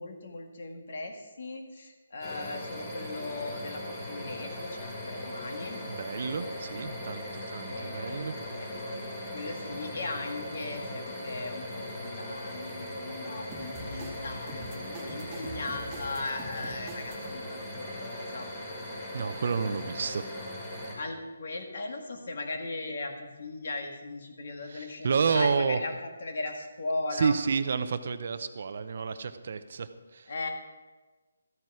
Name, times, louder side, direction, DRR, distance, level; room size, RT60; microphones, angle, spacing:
voice 1, 0.0-5.8 7.7-8.7 9.3-18.5 21.0-27.4 30.3-30.5, left 3 dB, 55° left, 4 dB, 1.8 m, -38 dB
sound 1, 2.2-20.9, left 1 dB, 20° left, 3.3 m, -39 dB
voice 2, 5.9-8.4 19.1-20.2 24.7-25.8 27.1-30.3, right 5 dB, 45° right, 11 dB, 0.7 m, -30 dB
sound 2, 13.5-17.3, right 2 dB, 10° right, 2.0 m, -44 dB
13.5 x 9.0 x 4.9 m, 1.3 s
hypercardioid pair, 170°, 0 cm